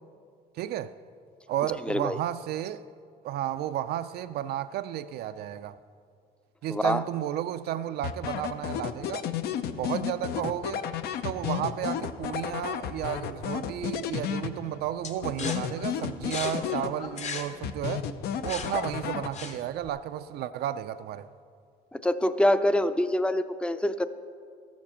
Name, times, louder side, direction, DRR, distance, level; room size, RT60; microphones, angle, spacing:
voice 1, 0.6-0.9 1.5-2.8 3.2-5.8 6.6-9.2 9.7-10.8 11.2-18.1 18.4-21.3, right 11 dB, 70° right, 0.4 m, -32 dB
voice 2, 1.8-2.2 6.7-7.0 15.4-15.6 21.9-24.0, left 1 dB, 5° left, 0.4 m, -25 dB
sound 1, 8.0-14.9 15.2-17.3 17.6-19.7, left 9 dB, 70° left, 0.6 m, -33 dB
sound 2, 15.0-19.9, left 5 dB, 40° left, 1.0 m, -39 dB
13.0 x 7.2 x 5.7 m
cardioid pair, 110°, 17 cm